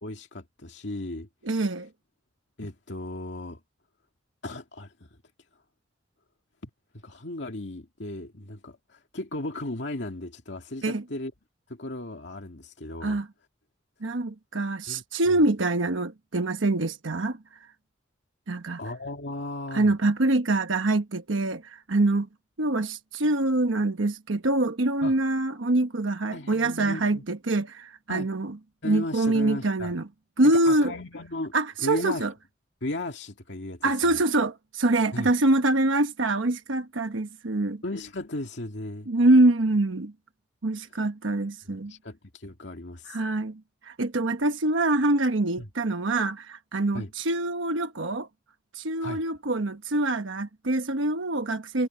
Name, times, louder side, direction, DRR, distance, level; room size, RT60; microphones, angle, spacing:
voice 1, 0.0-1.3 2.6-3.6 4.4-5.1 6.6-11.3 11.7-13.2 14.9-15.0 18.8-19.9 25.0-25.2 26.3-27.2 28.1-28.3 28.8-30.0 30.4-32.3 32.8-34.2 35.1-35.3 37.8-39.1 40.9-41.0 41.7-43.2 45.6-45.7 46.9-47.1 49.0-49.2, left 2 dB, 70° left, 2.1 m, -36 dB
voice 2, 1.5-1.9 10.8-11.0 13.0-13.3 14.0-17.4 18.5-18.8 19.7-22.3 22.6-28.5 28.8-30.0 30.4-30.9 31.5-32.3 33.8-37.8 39.1-40.1 40.6-41.9 43.1-48.3 48.7-51.9, right 2 dB, 90° right, 1.1 m, -25 dB
head